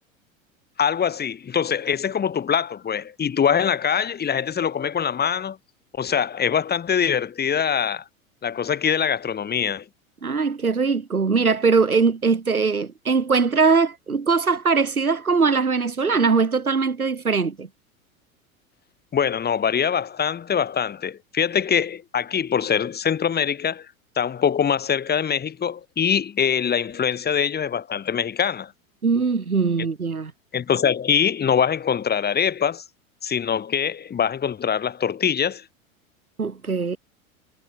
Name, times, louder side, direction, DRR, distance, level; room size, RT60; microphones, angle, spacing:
voice 1, 0.8-5.6 5.9-8.0 8.4-9.8 19.1-23.9 24.2-28.7 30.5-32.8 33.2-35.6, left 7 dB, 20° left, 4.1 m, -23 dB
voice 2, 10.2-17.7 29.0-30.3 36.4-37.0, right 4 dB, 85° right, 6.1 m, -21 dB
figure-of-eight pair, 90°, 42 cm